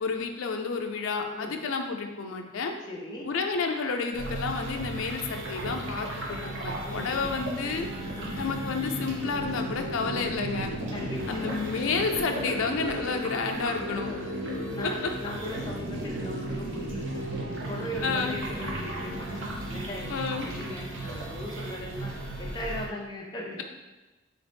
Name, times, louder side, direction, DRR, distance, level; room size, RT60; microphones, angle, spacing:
voice 1, 0.0-2.7 3.2-7.9 8.4-10.7 11.3-14.1 14.8-14.9 18.0-18.4 20.1-20.5, left 4 dB, 80° left, 4 dB, 0.4 m, -30 dB
voice 2, 2.8-3.3 6.8-7.4 8.2-8.3 10.9-11.4 14.1-14.2 14.6-17.3 17.6-19.4 19.7-23.6, left 1 dB, 20° left, -2 dB, 0.6 m, -39 dB
sound 1, 4.1-22.9, right 1 dB, 70° right, 0.8 m, -35 dB
3.9 x 3.9 x 3.4 m, 1.1 s
head